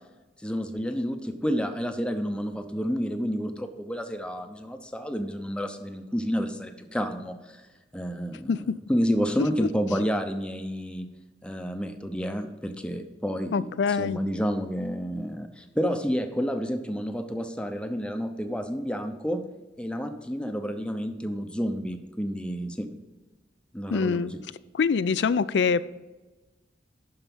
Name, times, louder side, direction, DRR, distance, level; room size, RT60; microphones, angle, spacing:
voice 1, 0.4-7.4 7.9-11.1 11.4-19.4 19.8-22.9 23.7-24.4, equal, 5° left, 6 dB, 0.7 m, -30 dB
voice 2, 13.5-14.2 23.9-24.3 24.7-25.8, left 5 dB, 70° left, 17 dB, 0.4 m, -24 dB
12.0 x 4.7 x 5.4 m, 1.2 s
head